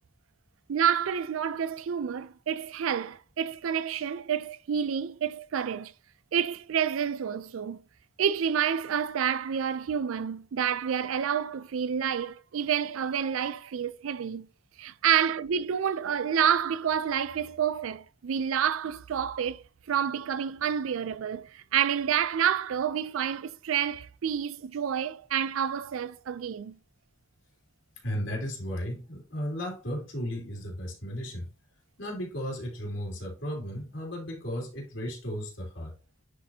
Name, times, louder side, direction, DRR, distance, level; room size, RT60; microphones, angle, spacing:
voice 1, 0.7-5.9 6.3-7.8 8.2-14.5 14.8-26.8, right 8 dB, 90° right, 0.4 m, -29 dB
voice 2, 28.0-31.5 32.0-36.0, equal, 70° left, 2.7 m, -35 dB
10.0 x 4.1 x 2.8 m
head